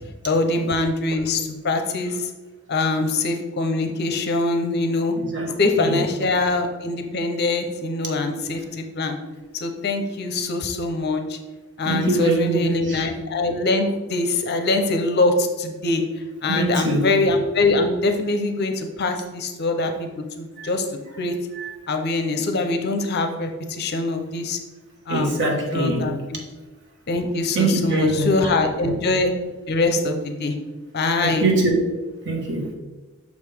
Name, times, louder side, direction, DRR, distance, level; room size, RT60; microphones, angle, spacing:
voice 1, 0.3-2.3 2.7-5.2 5.6-9.2 9.5-11.4 11.8-16.0 16.4-20.1 20.4-20.9 21.2-21.3 21.9-24.6 25.1-25.4 25.7-26.4 27.1-29.3 29.7-30.5 30.9-31.5, left 2 dB, 50° left, 5 dB, 0.7 m, -23 dB
voice 2, 5.3-6.0 11.8-13.0 16.5-17.0 20.6-20.7 21.6-21.7 25.1-26.0 27.5-28.3 28.7-28.9 31.2-31.8 32.2-32.7, right 2 dB, 55° right, 0 dB, 1.3 m, -23 dB
6.2 x 5.3 x 3.5 m, 1.2 s
head